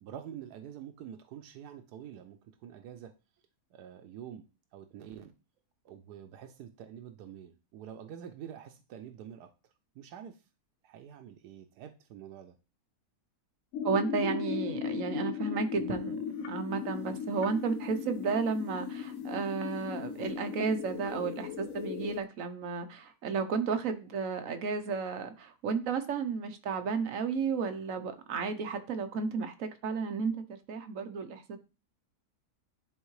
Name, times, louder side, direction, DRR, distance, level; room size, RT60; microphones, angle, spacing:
voice 1, 0.0-3.1 3.7-4.4 4.7-5.3 5.8-9.5 9.9-10.4 10.8-12.5, right 9 dB, 85° right, 1.2 m, -47 dB
sound 1, 13.7-22.2, left 7 dB, 65° left, 1.0 m, -37 dB
voice 2, 13.8-30.4 30.7-31.6, right 5 dB, 60° right, 1.2 m, -33 dB
10.5 x 3.7 x 3.1 m
omnidirectional pair, 1.7 m